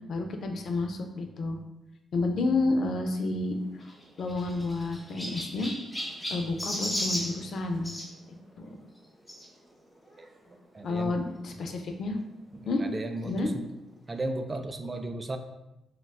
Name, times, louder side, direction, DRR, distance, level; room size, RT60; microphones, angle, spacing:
voice 1, 0.1-1.6 2.1-3.5 4.2-5.7 6.3-8.0 8.6-8.7 10.8-12.2 12.7-12.8 13.2-13.5, left 2 dB, 65° left, 5 dB, 0.4 m, -30 dB
Chirp tweet, 3.8-8.1 9.3-9.5 10.2-10.3 10.5-10.6 11.8-11.9, equal, 10° left, 1.3 m, -35 dB
voice 2, 10.7-11.2 12.5-13.7 14.1-15.4, right 2 dB, 35° right, 6 dB, 0.3 m, -35 dB
3.9 x 2.1 x 2.3 m, 0.93 s
supercardioid pair, 65°, 0 cm